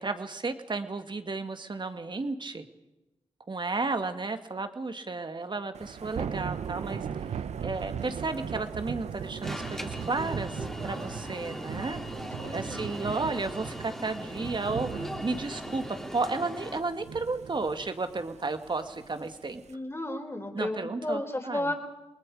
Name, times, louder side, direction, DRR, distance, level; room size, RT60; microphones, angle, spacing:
voice 1, 0.0-2.7 3.5-7.0 7.6-12.0 12.5-15.8 16.1-19.6 20.5-21.7, right 3 dB, 45° right, 8 dB, 2.0 m, -33 dB
Thunder / Rain, 5.7-19.7, right 7 dB, 80° right, 0.8 m, -38 dB
Alarm, 9.4-16.8, equal, 5° left, 3.5 m, -39 dB
voice 2, 12.4-12.9 19.7-21.7, left 1 dB, 20° left, 4 dB, 4.6 m, -33 dB
29.5 x 20.0 x 4.9 m, 1.0 s
cardioid pair, 50°, 11 cm